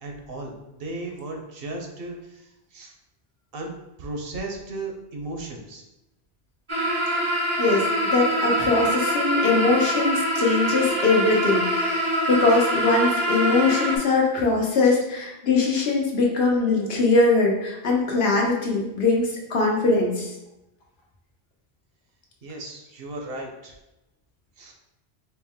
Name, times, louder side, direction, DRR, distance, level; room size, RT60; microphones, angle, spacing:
voice 1, 0.0-2.9 3.5-5.8 14.8-15.0 22.4-23.8 24.6-24.7, right 2 dB, 65° right, 2 dB, 0.9 m, -36 dB
sound 1, 6.7-14.0, equal, 35° right, 0.6 m, -24 dB
voice 2, 8.1-20.3, left 3 dB, 75° left, -1 dB, 1.1 m, -21 dB
4.5 x 2.1 x 3.5 m, 0.94 s
omnidirectional pair, 1.1 m